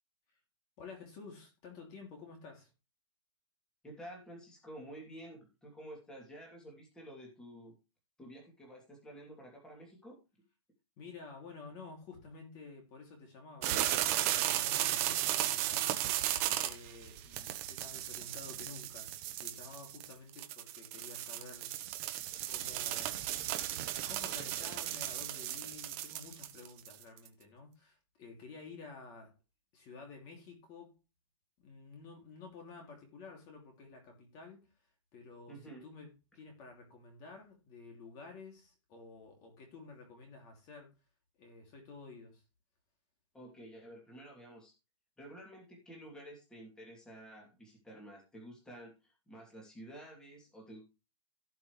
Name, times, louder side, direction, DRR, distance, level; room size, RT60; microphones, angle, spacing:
voice 1, 0.8-2.7 11.0-13.8 14.2-15.9 16.2-19.1 19.4-21.7 22.5-23.2 24.1-29.3 29.7-30.9 31.6-34.6 35.1-40.9 41.4-42.4, left 4 dB, 25° left, 1 dB, 2.7 m, -51 dB
voice 2, 3.8-7.7 8.2-10.2 35.5-35.8 43.3-44.7 45.2-50.8, right 1 dB, 5° left, -2 dB, 2.7 m, -51 dB
sound 1, 13.6-27.3, right 13 dB, 25° right, 1.1 m, -35 dB
17.0 x 6.0 x 3.2 m, 0.29 s
hypercardioid pair, 170°, 17 cm